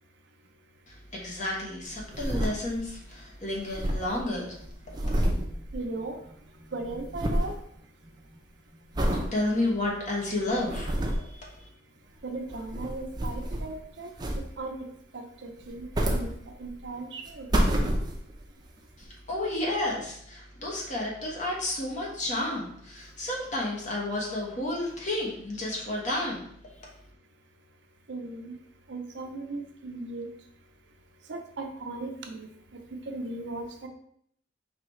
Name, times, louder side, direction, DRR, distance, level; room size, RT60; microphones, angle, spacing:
voice 1, 0.9-4.6 4.9-5.1 9.3-11.7 19.0-26.7, left 1 dB, 40° left, -3 dB, 1.2 m, -31 dB
sound 1, 1.9-3.0 3.3-3.4 3.6-6.3 6.6-7.6 8.1-8.4 8.9-9.3 9.8-9.9 10.5-11.3 12.3-13.8 14.2-14.8 15.6-16.9 17.3-18.5 19.0-19.1, right 1 dB, 25° right, 0.6 m, -29 dB
voice 2, 5.7-6.2 6.7-7.5 12.2-14.1 14.6-14.7 15.1-15.9 16.1-16.3 16.6-17.5 28.1-28.6 28.9-30.3 31.3-32.5 33.1-33.9, right 2 dB, 75° right, 4 dB, 0.7 m, -37 dB
4.7 x 3.4 x 3.1 m, 0.68 s
head